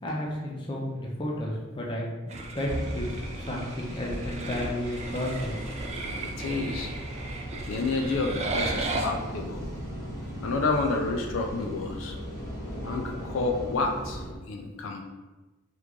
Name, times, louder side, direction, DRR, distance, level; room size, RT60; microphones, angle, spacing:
voice 1, 0.0-5.6, left 1 dB, 25° left, -2 dB, 0.5 m, -32 dB
sound 1, 2.3-9.1, right 2 dB, 35° right, 0.3 m, -35 dB
sound 2, 2.7-14.3, equal, 15° right, 0.9 m, -42 dB
sound 3, 5.4-14.3, equal, 40° left, 0.9 m, -39 dB
voice 2, 6.2-6.9 7.6-9.7 10.4-12.2 12.8-15.0, left 3 dB, 75° left, 3 dB, 0.4 m, -30 dB
3.0 x 2.4 x 3.5 m, 1.2 s
head